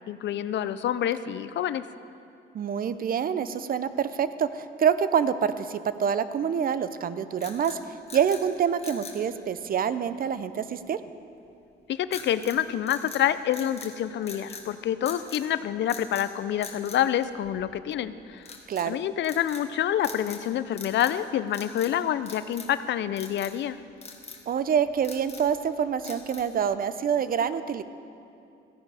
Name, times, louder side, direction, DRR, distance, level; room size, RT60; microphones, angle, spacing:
voice 1, 0.0-1.8 11.9-18.4 18.8-23.8, left 10 dB, 65° left, 14 dB, 0.5 m, -27 dB
voice 2, 2.5-11.0 18.7-19.0 24.5-27.8, right 7 dB, 45° right, 13 dB, 0.6 m, -26 dB
sound 1, 7.4-8.5 8.8-9.2 12.1-12.6 12.9-13.9 14.2-14.7 15.1-15.5 15.9-16.3 16.6-17.8 18.4-18.9 19.2-19.7 20.0-20.5 20.7-21.2 21.5-21.9 22.3-22.8 23.2-23.6 24.0-24.4 24.9-25.5 26.0-26.6, left 4 dB, 30° left, 1.6 m, -43 dB
15.0 x 10.5 x 4.9 m, 2.6 s
cardioid pair, 90°, 20 cm